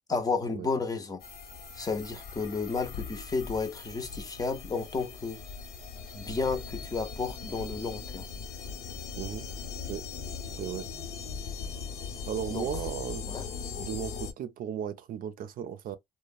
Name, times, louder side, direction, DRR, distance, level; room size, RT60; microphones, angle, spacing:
voice 1, 0.1-1.2 1.8-5.4 6.1-8.2 12.5-12.8 13.3-13.5, left 4 dB, 20° left, 0.6 m, -32 dB
sound 1, 1.2-14.3, left 6 dB, 65° left, 1.0 m, -40 dB
sound 2, 2.8-7.9, left 6 dB, 90° left, 0.5 m, -45 dB
voice 2, 10.6-10.9 12.3-13.3 13.8-16.0, right 9 dB, 60° right, 0.5 m, -36 dB
3.0 x 2.1 x 2.3 m
cardioid pair, 110°, 17 cm